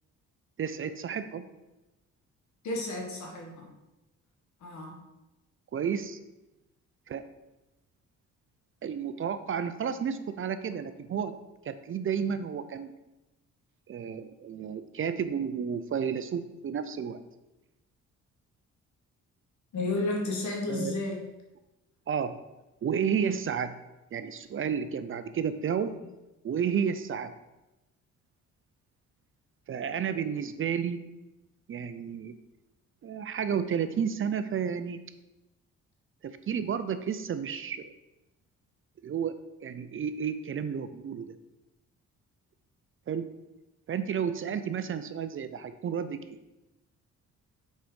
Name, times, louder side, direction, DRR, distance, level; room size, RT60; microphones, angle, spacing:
voice 1, 0.6-1.5 5.7-6.2 7.1-7.2 8.8-11.3 11.6-12.9 13.9-17.2 20.7-20.9 22.1-22.3 22.8-23.8 24.1-26.0 26.4-27.3 29.7-31.0 31.7-32.3 33.0-35.0 36.2-37.9 39.0-41.4 43.1-43.3 43.9-46.4, right 7 dB, 45° right, 11 dB, 0.6 m, -31 dB
voice 2, 2.6-3.7 4.6-5.0 19.7-21.2 25.8-26.0, left 2 dB, 70° left, 0 dB, 2.1 m, -32 dB
6.6 x 4.6 x 5.2 m, 0.99 s
cardioid pair, 90°, 30 cm